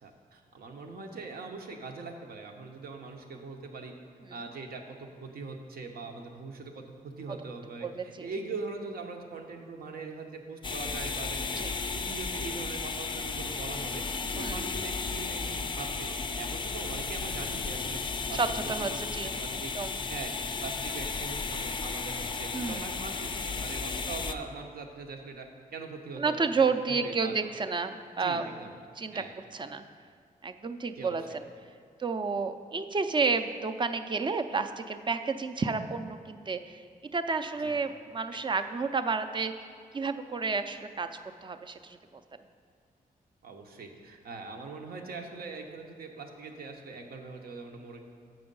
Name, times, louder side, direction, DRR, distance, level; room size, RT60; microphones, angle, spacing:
voice 1, 0.0-3.9 4.3-11.6 11.9-14.0 14.3-16.1 16.4-18.0 18.3-18.4 18.9-19.0 19.4-19.7 20.1-20.3 20.6-25.5 25.7-26.5 26.9-27.3 28.2-28.7 29.1-29.3 31.0-31.2 37.6-37.8 38.3-38.4 43.4-48.0, right 4 dB, 80° right, 3 dB, 0.9 m, -41 dB
voice 2, 7.8-8.3 11.6-11.8 14.3-14.7 18.3-20.0 22.5-22.9 26.2-28.5 29.0-29.2 29.5-29.8 30.4-31.4 32.0-36.8 37.1-39.7 39.9-41.1 41.4-42.2, right 4 dB, 30° right, 8 dB, 0.4 m, -31 dB
sound 1, 10.6-24.3, left 4 dB, 30° left, 0.4 m, -34 dB
7.8 x 6.2 x 5.3 m, 2.1 s
cardioid pair, 90°, 15 cm